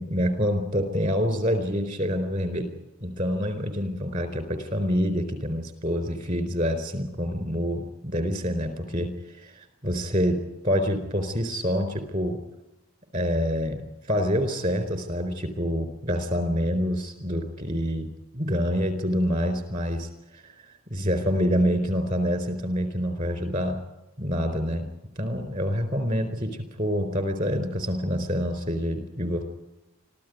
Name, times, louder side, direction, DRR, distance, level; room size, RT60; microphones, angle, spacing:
voice 1, 0.0-2.7 3.0-12.4 13.1-13.8 14.1-18.1 18.3-20.5 20.9-23.8 24.2-24.9 25.2-29.4, equal, 35° right, 10 dB, 4.2 m, -27 dB
25.0 x 14.5 x 9.4 m, 0.96 s
head